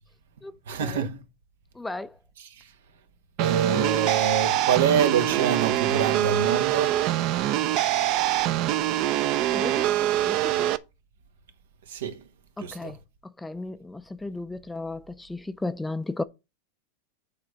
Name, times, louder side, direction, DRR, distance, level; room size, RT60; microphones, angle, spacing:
voice 1, 0.7-1.2 2.4-2.7 3.4-7.1 11.9-12.2 12.6-12.9, right 7 dB, 85° right, 1.4 m, -26 dB
voice 2, 1.8-2.1 9.5-9.9 10.3-10.7 12.6-13.0 13.4-16.2, left 2 dB, 5° left, 0.5 m, -34 dB
sound 1, 3.4-10.8, right 13 dB, 45° right, 0.6 m, -24 dB
8.7 x 3.4 x 6.3 m
supercardioid pair, 140°, 0 cm